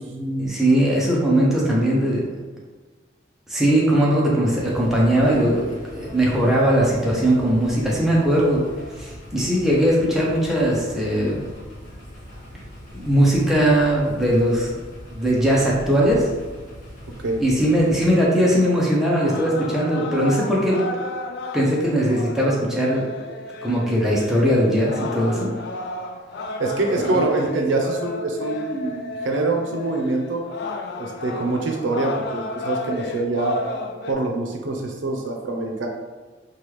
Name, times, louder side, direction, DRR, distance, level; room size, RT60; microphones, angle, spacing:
voice 1, 0.1-2.2 3.5-8.6 9.0-11.4 12.9-14.8 15.1-16.3 17.4-20.8 21.5-23.1 23.6-25.5 27.0-27.2, right 1 dB, ahead, -5 dB, 0.6 m, -20 dB
sound 1, 4.6-18.1, equal, 45° left, 1.0 m, -40 dB
sound 2, 18.9-34.1, left 2 dB, 60° left, 0.3 m, -33 dB
voice 2, 26.6-30.4 31.0-33.6 34.1-35.9, right 2 dB, 85° right, 2 dB, 0.5 m, -24 dB
3.3 x 2.3 x 3.0 m, 1.4 s
head